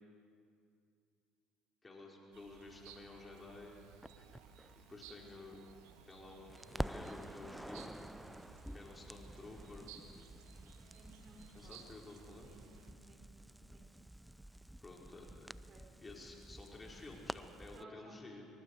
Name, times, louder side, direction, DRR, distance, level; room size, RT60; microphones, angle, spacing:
voice 1, 1.8-3.8 4.9-5.6 6.1-8.1 8.7-9.9 11.5-12.5 14.8-15.5 16.0-18.5, left 2 dB, 25° left, -2 dB, 5.2 m, -52 dB
sound 1, 2.3-12.9, right 7 dB, 80° right, 1.8 m, -59 dB
Crackle, 4.0-6.2 6.5-17.8, right 1 dB, 5° right, 0.5 m, -49 dB
voice 2, 10.4-11.8 12.4-13.2 13.7-13.9 15.2-15.3 15.7-15.8 17.7-18.4, right 1 dB, 40° right, 2 dB, 5.3 m, -60 dB
27.0 x 24.0 x 5.0 m, 2.4 s
hypercardioid pair, 70°, 0 cm